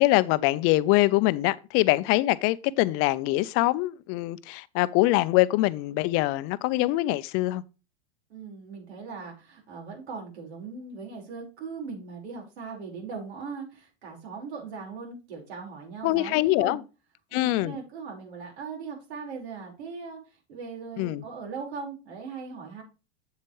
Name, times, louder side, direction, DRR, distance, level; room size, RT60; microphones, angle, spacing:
voice 1, 0.0-7.6 16.0-16.8 17.3-17.8 21.0-21.2, left 18 dB, 45° left, 0.6 m, -24 dB
voice 2, 8.3-16.8 17.3-20.2 20.5-22.8, right 5 dB, 80° right, 4.7 m, -39 dB
8.3 x 7.6 x 3.2 m
supercardioid pair, 125°, 32 cm